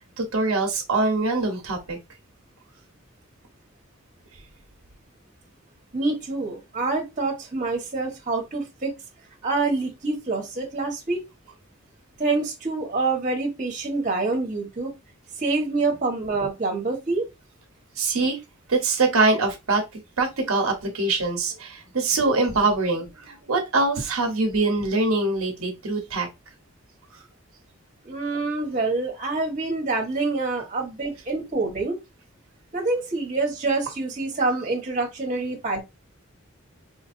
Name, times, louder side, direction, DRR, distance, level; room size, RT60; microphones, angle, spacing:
voice 1, 0.2-2.0 18.0-18.4 18.7-19.8 20.2-26.3, right 3 dB, 90° right, 1.0 m, -23 dB
voice 2, 5.9-8.9 9.4-11.2 12.2-14.9 15.4-17.3 28.0-32.0 32.7-35.8, right 3 dB, 35° right, 1.3 m, -26 dB
4.5 x 2.6 x 2.5 m
head